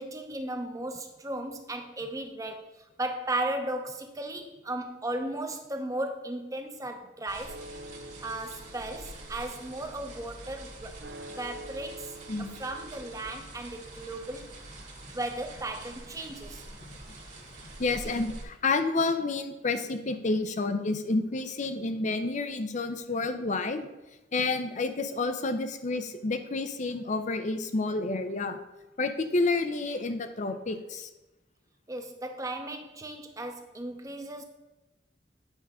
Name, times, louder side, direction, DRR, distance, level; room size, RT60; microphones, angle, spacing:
voice 1, 0.0-2.6 3.0-7.6 8.2-11.0 11.4-12.2 12.6-14.5 15.1-16.6 31.9-34.4, right 1 dB, 20° right, 5 dB, 0.8 m, -35 dB
sound 1, 7.3-18.4, right 2 dB, 40° right, 1.6 m, -46 dB
sound 2, 7.5-13.4, right 1 dB, 70° right, 0.5 m, -47 dB
voice 2, 17.8-23.9 24.3-28.6 29.0-31.1, left 3 dB, 45° left, 9 dB, 0.6 m, -29 dB
9.0 x 5.4 x 3.6 m, 1.0 s
head